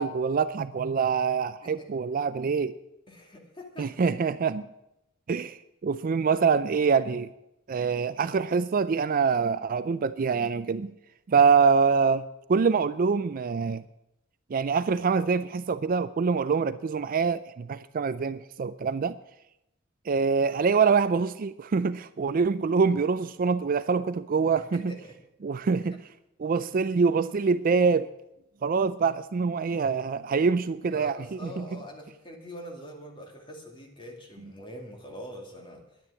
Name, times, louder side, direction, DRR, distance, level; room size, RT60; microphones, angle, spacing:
voice 1, 0.0-2.8 3.8-4.7 5.3-7.3 7.7-10.9 11.3-13.8 14.5-19.2 20.1-24.9 25.4-26.0 26.4-28.1 28.6-31.8, right 5 dB, 40° right, 0.4 m, -25 dB
voice 2, 3.1-4.2 24.5-25.2 30.9-36.0, equal, 25° left, 2.6 m, -44 dB
10.5 x 9.7 x 8.4 m
head